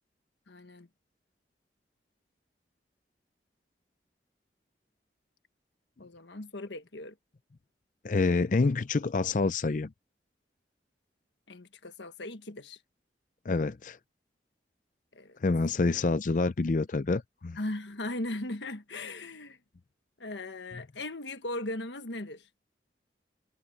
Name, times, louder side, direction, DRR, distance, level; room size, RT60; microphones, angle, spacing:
voice 1, 0.5-0.9 6.0-7.1 11.5-12.8 15.1-15.4 17.6-19.6 20.2-22.4, left 2 dB, 85° left, 1.4 m, -38 dB
voice 2, 8.0-9.9 13.5-14.0 15.4-17.6, left 3 dB, 45° left, 0.5 m, -27 dB
head